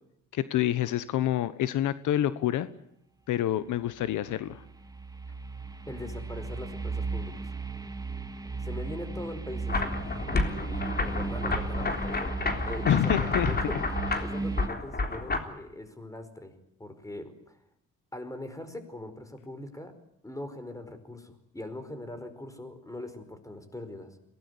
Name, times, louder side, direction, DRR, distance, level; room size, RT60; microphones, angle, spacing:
voice 1, 0.3-2.7 3.3-4.6 12.9-13.5, left 12 dB, 80° left, 14 dB, 1.2 m, -27 dB
sound 1, 4.0-14.7, right 4 dB, 10° right, 2.3 m, -36 dB
voice 2, 5.9-7.5 8.6-10.0 10.4-13.8 14.2-17.6 18.1-20.0 20.2-24.2, left 1 dB, 10° left, 10 dB, 5.0 m, -41 dB
sound 2, 9.7-15.4, left 3 dB, 30° left, 3.6 m, -30 dB
22.5 x 18.5 x 9.9 m, 0.79 s
cardioid pair, 90°, 30 cm